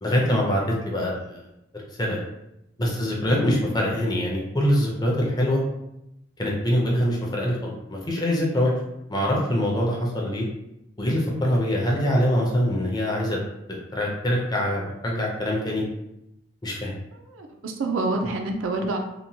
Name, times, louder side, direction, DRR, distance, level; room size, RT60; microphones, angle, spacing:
voice 1, 0.0-1.4 2.0-2.2 2.8-5.6 6.4-8.7 9.1-10.4 11.0-13.4 13.7-15.8 16.6-16.9, equal, 20° left, -2 dB, 0.5 m, -24 dB
voice 2, 17.3-19.0, right 2 dB, 80° right, 4 dB, 0.4 m, -27 dB
2.9 x 2.1 x 2.7 m, 0.87 s
head